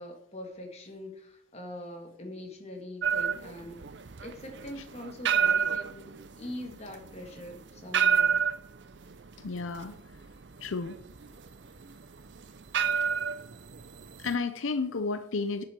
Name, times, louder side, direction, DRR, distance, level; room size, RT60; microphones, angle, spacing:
voice 1, 0.0-3.9 4.2-6.1 6.4-8.4, left 1 dB, 30° left, 2 dB, 2.1 m, -43 dB
sound 1, 3.0-14.4, right 7 dB, 60° right, 0.6 m, -30 dB
voice 2, 9.4-10.0 10.6-11.0 14.2-15.6, left 4 dB, 80° left, 10 dB, 0.6 m, -32 dB
11.0 x 7.6 x 4.5 m, 0.71 s
head